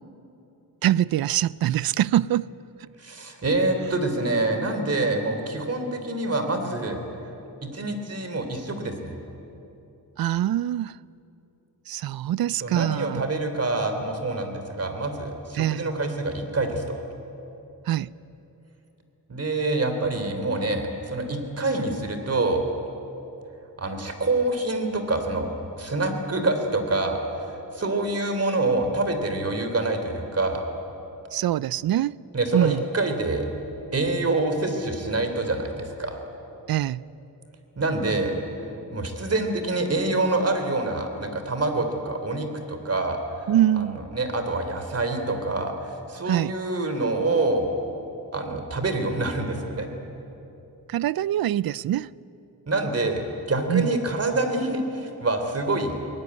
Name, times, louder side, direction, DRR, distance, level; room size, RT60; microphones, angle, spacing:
voice 1, 0.8-2.5 2.8-2.9 10.2-11.0 11.9-13.2 15.6-15.9 17.9-18.1 31.3-32.2 32.5-32.8 36.7-37.0 43.5-44.0 46.3-46.5 50.9-52.1 53.7-53.9, right 12 dB, 70° right, 0.5 m, -24 dB
voice 2, 3.0-7.0 7.6-9.1 12.6-17.0 19.3-22.6 23.8-25.5 25.8-30.6 32.3-33.5 33.9-36.2 37.8-38.3 38.9-43.8 44.1-47.7 48.3-49.9 52.7-53.2 53.5-55.9, right 2 dB, 40° right, 3.4 m, -26 dB
23.0 x 18.5 x 9.6 m
cardioid pair, 90°, 37 cm